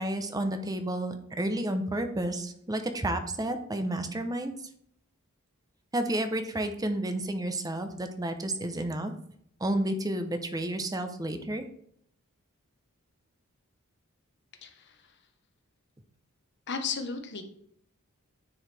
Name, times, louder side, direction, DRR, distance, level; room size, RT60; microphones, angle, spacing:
voice 1, 0.0-4.6 5.9-9.1 9.6-11.6, right 1 dB, 15° right, 7 dB, 0.7 m, -31 dB
voice 2, 14.6-15.0 16.7-17.4, left 5 dB, 50° left, 6 dB, 1.0 m, -34 dB
9.5 x 4.7 x 3.4 m, 0.68 s
head